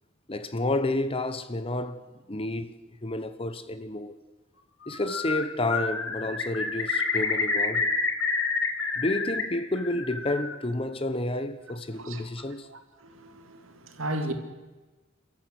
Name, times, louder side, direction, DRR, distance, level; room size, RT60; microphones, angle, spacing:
voice 1, 0.3-2.0 2.3-2.7 3.0-4.1 4.9-8.0 9.0-12.7, left 1 dB, 25° left, 1.0 m, -30 dB
Bird, 4.9-5.4 5.7-9.4 9.7-10.5, left 4 dB, 70° left, 2.4 m, -28 dB
voice 2, 11.9-12.3 12.6-14.3, right 1 dB, 85° right, 2.5 m, -35 dB
29.5 x 13.5 x 8.0 m
head